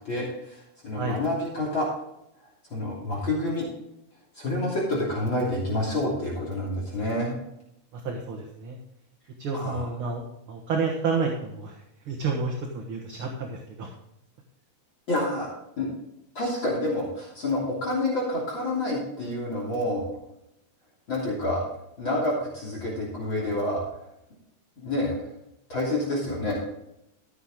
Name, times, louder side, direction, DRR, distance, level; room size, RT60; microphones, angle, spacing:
voice 1, 0.0-1.9 2.7-3.7 4.4-7.3 9.5-9.8 15.1-15.5 15.8-15.9 16.4-20.1 21.1-21.6 22.0-23.8 24.8-25.1 25.7-26.6, left 1 dB, 40° left, -4 dB, 3.7 m, -28 dB
voice 2, 7.9-8.8 9.4-10.2 10.5-11.8 12.1-13.9, right 4 dB, 50° right, 1 dB, 2.0 m, -30 dB
14.5 x 8.0 x 3.8 m, 0.81 s
omnidirectional pair, 3.5 m